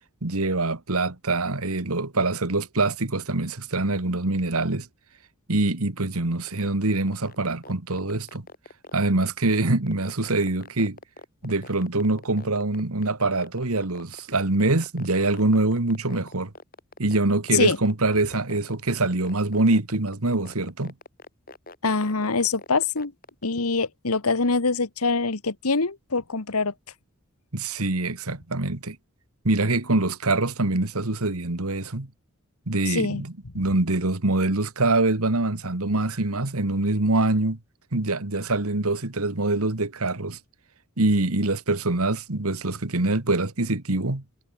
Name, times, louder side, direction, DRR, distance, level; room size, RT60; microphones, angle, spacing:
voice 1, 0.2-4.9 5.5-8.5 8.9-11.0 11.4-16.5 17.0-20.9 27.5-29.0 29.4-32.1 32.7-37.6 37.9-40.4 41.0-44.2, right 2 dB, 80° right, 1.9 m, -24 dB
sound 1, 6.5-23.4, left 2 dB, 40° left, 6.0 m, -44 dB
voice 2, 21.8-23.1 23.4-26.7 32.9-33.2, left 4 dB, 85° left, 1.5 m, -24 dB
head